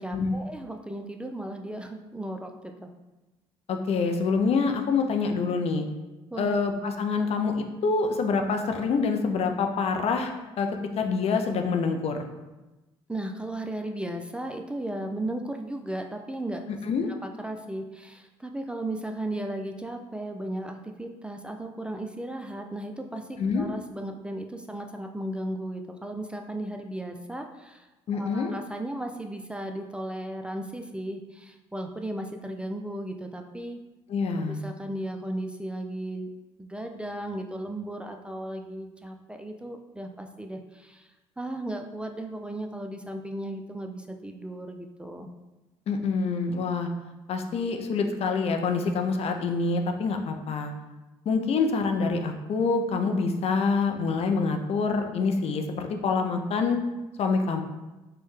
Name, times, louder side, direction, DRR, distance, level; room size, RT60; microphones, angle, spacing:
voice 1, 0.0-2.9 6.3-6.6 13.1-16.7 17.2-27.9 28.1-33.8 34.5-36.3 36.6-41.1 41.4-45.3, right 1 dB, 10° right, 4 dB, 0.3 m, -35 dB
voice 2, 3.7-5.9 6.4-10.7 11.0-12.3 16.8-17.1 23.4-23.7 28.1-28.5 34.1-34.6 45.9-46.9 47.3-50.7 51.3-56.8 57.2-57.6, left 4 dB, 55° left, 5 dB, 0.4 m, -26 dB
4.4 x 2.1 x 3.1 m, 1.1 s
supercardioid pair, 60°, 12 cm